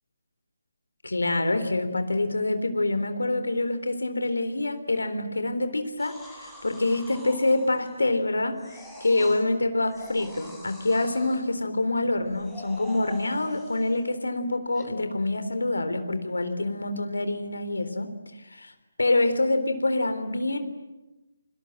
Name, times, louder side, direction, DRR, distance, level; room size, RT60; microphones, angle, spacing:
voice 1, 1.0-8.6 9.0-18.1 18.5-18.7 19.0-20.6, left 2 dB, 85° left, 9 dB, 3.7 m, -26 dB
sound 1, 6.0-8.2 8.6-9.4 9.9-11.5 12.1-14.1 14.7-14.8, equal, ahead, 7.0 m, -46 dB
29.0 x 25.0 x 7.8 m, 1.0 s
figure-of-eight pair, 155°, 0 cm